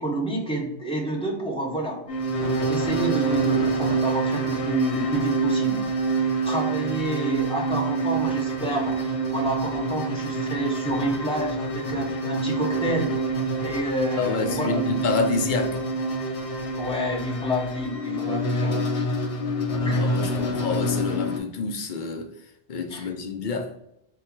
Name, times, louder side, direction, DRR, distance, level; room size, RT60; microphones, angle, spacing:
voice 1, 0.0-2.0 2.4-5.8 6.4-8.9 9.3-13.1 13.6-15.1 16.8-19.0 19.8-20.0 22.9-23.1, right 1 dB, 5° left, 0.9 m, -29 dB
sound 1, 2.1-21.4, right 2 dB, 80° left, 1.0 m, -26 dB
voice 2, 14.2-15.8 20.0-22.3 22.7-23.7, left 4 dB, 55° left, 0.6 m, -28 dB
3.9 x 2.3 x 4.4 m
omnidirectional pair, 1.1 m